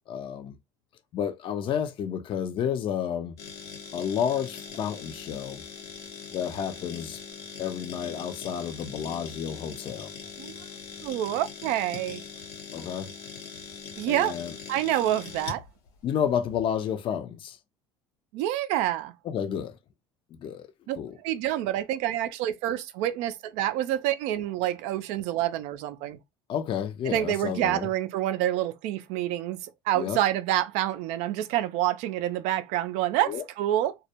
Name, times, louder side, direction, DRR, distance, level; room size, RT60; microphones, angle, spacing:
voice 1, 0.1-0.6 1.1-3.4 3.9-5.6 6.3-7.2 7.6-10.1 12.7-13.1 14.1-14.6 16.0-17.6 19.2-19.8 20.3-20.7 21.0-21.2 26.5-27.9 29.9-30.2 33.3-33.4, left 8 dB, 45° left, 0.5 m, -31 dB
sound 1, 3.4-16.6, left 6 dB, 80° left, 0.8 m, -42 dB
voice 2, 11.0-12.2 14.0-14.4 14.7-15.6 18.3-19.1 20.9-21.0 21.2-26.2 27.1-29.6 29.9-34.0, right 13 dB, 65° right, 0.4 m, -27 dB
2.2 x 2.0 x 2.7 m
hypercardioid pair, 80°, 12 cm